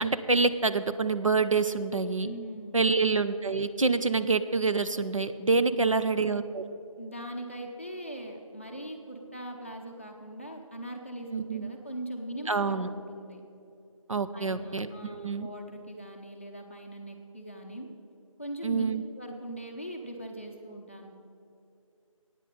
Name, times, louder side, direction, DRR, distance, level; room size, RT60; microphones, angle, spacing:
voice 1, 0.0-2.3 2.7-6.6 11.3-11.7 12.5-12.9 14.1-15.5 18.6-19.0, right 4 dB, 65° right, 10 dB, 0.6 m, -27 dB
voice 2, 2.2-2.9 5.5-6.0 7.0-13.4 14.3-17.9 18.4-18.8 19.1-21.1, right 1 dB, 20° left, 0 dB, 0.7 m, -41 dB
9.4 x 9.1 x 6.5 m, 2.6 s
figure-of-eight pair, 170°, 18 cm